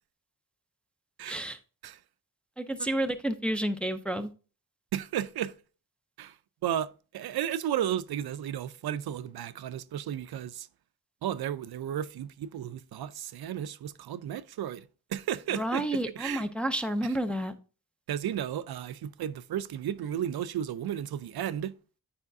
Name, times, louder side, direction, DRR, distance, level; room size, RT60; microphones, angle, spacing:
voice 1, 1.2-1.6 2.6-4.3 15.5-17.6, right 1 dB, 5° left, 0.4 m, -30 dB
voice 2, 4.9-5.5 6.2-6.3 6.6-10.7 11.2-16.4 18.1-21.7, right 10 dB, 80° right, 0.5 m, -33 dB
9.8 x 4.9 x 2.6 m
wide cardioid pair, 150°, 37 cm